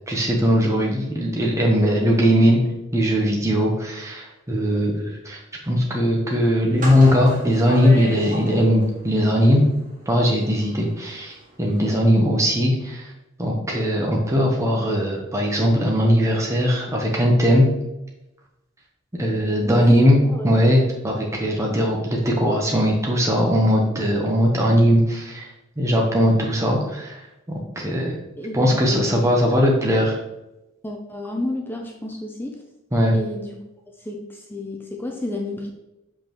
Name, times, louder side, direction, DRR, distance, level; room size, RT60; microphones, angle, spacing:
voice 1, 0.1-2.6 2.9-9.7 10.1-13.1 13.4-17.7 19.2-28.2 28.5-30.2 32.9-33.2, equal, 15° right, -1 dB, 0.9 m, -19 dB
sound 1, 6.7-9.1 9.4-11.0 11.3-11.4 11.7-11.8, equal, 40° right, 1.9 m, -33 dB
voice 2, 19.6-19.9 20.3-20.5 28.4-29.2 30.8-32.6 33.1-33.6 34.0-35.7, left 1 dB, 10° left, 1 dB, 0.6 m, -30 dB
6.8 x 5.3 x 3.0 m, 0.94 s
head